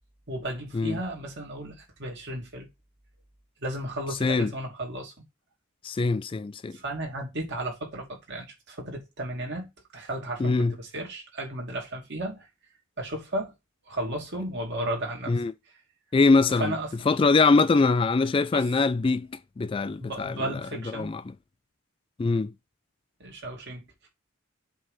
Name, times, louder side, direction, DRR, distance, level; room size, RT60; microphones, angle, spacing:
voice 1, 0.3-2.7 3.6-5.1 6.7-12.5 13.0-13.5 13.9-15.4 16.6-17.1 18.5-18.7 20.0-21.1 23.2-24.1, right 1 dB, 55° right, 2.7 m, -34 dB
voice 2, 4.2-4.5 5.8-6.8 10.4-10.7 15.3-15.5 16.1-16.7 17.1-19.3 19.6-20.3 20.9-21.2 22.2-22.5, left 3 dB, 25° left, 0.3 m, -23 dB
7.7 x 3.3 x 5.6 m
head